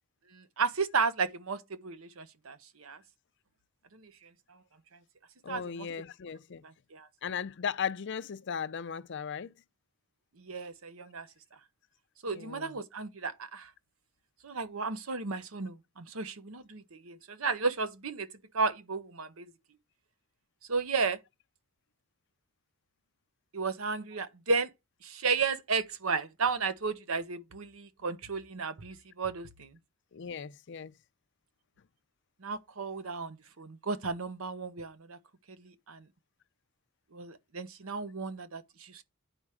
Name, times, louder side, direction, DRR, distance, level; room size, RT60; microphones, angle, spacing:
voice 1, 0.3-3.0 3.9-4.6 5.5-5.9 6.6-7.1 10.4-11.3 12.2-13.7 14.4-18.3 18.5-19.5 20.7-21.2 23.5-24.7 25.0-29.8 32.4-35.2 35.6-36.0 37.1-39.0, right 4 dB, 70° right, 0.9 m, -34 dB
voice 2, 5.4-6.6 7.2-9.5 12.4-12.7 30.1-30.9, left 7 dB, 55° left, 0.5 m, -37 dB
9.9 x 4.4 x 4.9 m
head